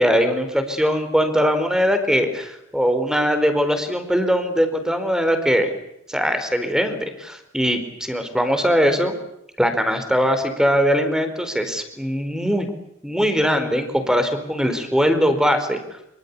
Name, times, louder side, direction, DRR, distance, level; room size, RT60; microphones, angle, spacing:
voice 1, 0.0-5.7 6.1-9.1 9.6-12.7 13.0-15.8, equal, 5° right, 8 dB, 4.6 m, -21 dB
26.0 x 25.0 x 8.5 m, 0.82 s
head